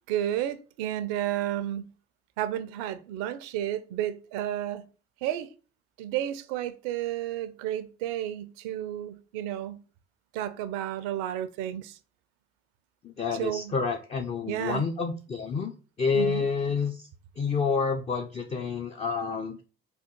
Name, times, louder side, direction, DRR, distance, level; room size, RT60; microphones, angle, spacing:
voice 1, 0.1-1.9 2.4-4.9 5.2-5.5 6.0-9.8 10.3-11.9 13.4-13.7 14.5-14.8 16.1-16.5, right 12 dB, 65° right, 0.5 m, -32 dB
voice 2, 13.0-15.7 16.0-17.1 17.4-19.6, left 5 dB, 25° left, 0.4 m, -29 dB
3.5 x 2.3 x 4.3 m
figure-of-eight pair, 50°, 29 cm